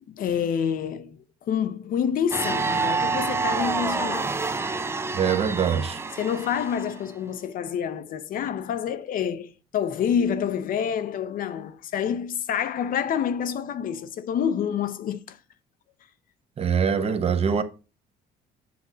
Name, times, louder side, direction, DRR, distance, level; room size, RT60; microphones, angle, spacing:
voice 1, 0.1-4.4 6.1-15.4, left 8 dB, 55° left, 0.7 m, -28 dB
sound 1, 2.3-7.0, right 4 dB, 15° right, 0.4 m, -28 dB
voice 2, 5.1-6.0 16.6-17.6, right 7 dB, 35° right, 0.8 m, -23 dB
7.7 x 2.7 x 6.0 m
cardioid pair, 110°, 17 cm